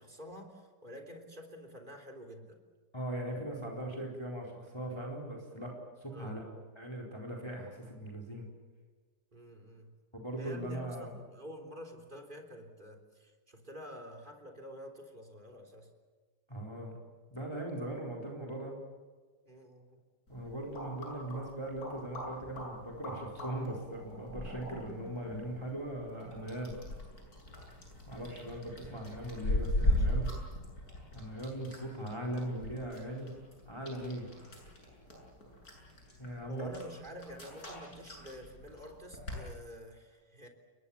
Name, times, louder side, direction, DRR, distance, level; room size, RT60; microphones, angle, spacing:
voice 1, 0.0-2.6 6.1-6.4 9.3-9.9 10.4-10.9 11.1-15.9 19.4-20.0 29.8-30.1 36.5-40.5, equal, 25° right, 2 dB, 3.8 m, -49 dB
voice 2, 2.9-5.7 6.0-6.4 6.7-8.5 10.1-11.1 16.5-17.0 17.3-18.8 20.3-26.8 28.1-30.3 31.1-33.3 33.7-34.6 36.2-36.7, right 1 dB, 15° left, 0 dB, 4.3 m, -39 dB
sound 1, 20.3-39.4, left 1 dB, 55° left, 8.1 m, -39 dB
30.0 x 22.0 x 7.3 m, 1.4 s
omnidirectional pair, 1.9 m